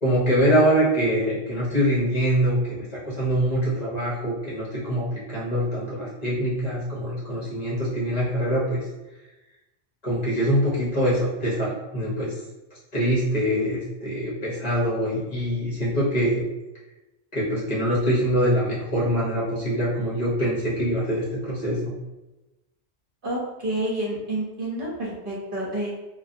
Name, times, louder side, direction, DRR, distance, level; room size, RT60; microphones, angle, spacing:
voice 1, 0.0-8.9 10.0-12.4 12.9-16.4 17.3-21.9, equal, 45° left, -7 dB, 0.7 m, -24 dB
voice 2, 23.2-25.9, right 1 dB, 55° right, -5 dB, 0.8 m, -29 dB
2.6 x 2.2 x 2.5 m, 1.0 s
omnidirectional pair, 1.1 m